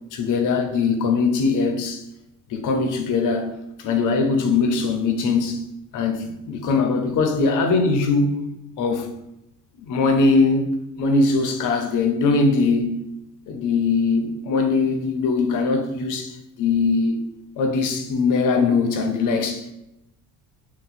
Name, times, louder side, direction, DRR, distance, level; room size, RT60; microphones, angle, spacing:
voice 1, 0.1-2.0 2.5-3.5 3.8-5.6 5.9-8.4 8.8-9.1 9.8-10.7 11.0-12.9 13.5-17.2 17.6-19.7, left 4 dB, 60° left, 0.6 m, -21 dB
2.7 x 2.1 x 4.0 m
cardioid pair, 130°, 35 cm